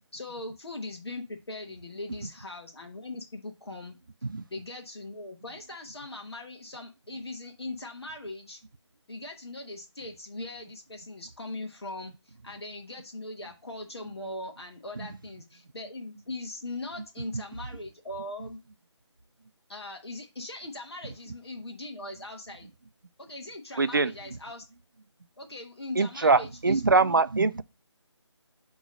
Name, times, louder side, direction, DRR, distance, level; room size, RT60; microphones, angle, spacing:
voice 1, 0.1-4.0 4.5-8.6 9.1-18.6 19.7-22.7 23.2-24.6 25.4-27.2, left 2 dB, 60° left, 1.2 m, -40 dB
voice 2, 23.8-24.1 26.0-27.6, right 3 dB, 45° right, 0.4 m, -23 dB
8.0 x 3.1 x 4.8 m
figure-of-eight pair, 175°, 15 cm